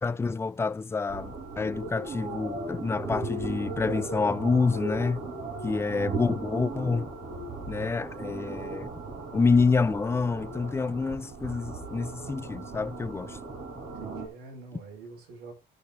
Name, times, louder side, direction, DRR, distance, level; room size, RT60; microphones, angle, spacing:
voice 1, 0.0-5.2 5.6-7.1 7.6-8.9 9.3-13.4, left 4 dB, 15° left, 0.4 m, -27 dB
sound 1, 1.1-14.3, right 3 dB, 45° right, 3.7 m, -37 dB
voice 2, 5.4-5.8 13.9-15.5, right 4 dB, 75° right, 3.9 m, -46 dB
16.5 x 5.5 x 3.4 m
cardioid pair, 110°, 17 cm